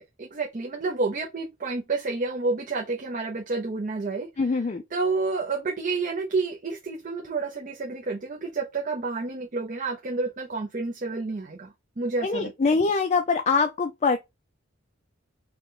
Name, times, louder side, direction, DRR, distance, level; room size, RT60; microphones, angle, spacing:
voice 1, 0.0-4.6 4.9-12.5, right 3 dB, 40° right, 0.6 m, -30 dB
voice 2, 4.4-4.8 12.2-14.2, left 4 dB, 35° left, 0.4 m, -23 dB
3.9 x 2.9 x 3.7 m
head